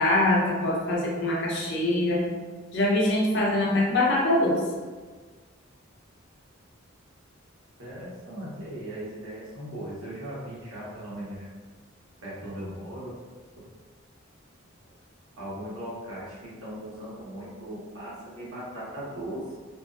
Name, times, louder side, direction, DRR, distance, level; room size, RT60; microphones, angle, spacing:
voice 1, 0.0-2.3 2.7-4.6, left 1 dB, 60° left, -3 dB, 0.6 m, -23 dB
voice 2, 7.8-11.5 12.2-13.1 15.4-19.5, right 1 dB, 90° right, -8 dB, 1.1 m, -38 dB
2.6 x 2.4 x 2.4 m, 1.4 s
head